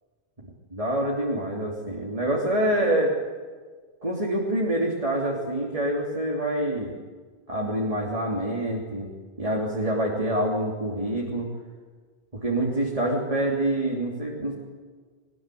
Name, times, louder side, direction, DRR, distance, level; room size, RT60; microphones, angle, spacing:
voice 1, 0.7-3.2 4.0-7.0 7.5-9.1 9.4-11.5 12.3-14.5, right 1 dB, 35° right, -3 dB, 3.4 m, -26 dB
22.5 x 20.5 x 9.3 m, 1.5 s
omnidirectional pair, 1.1 m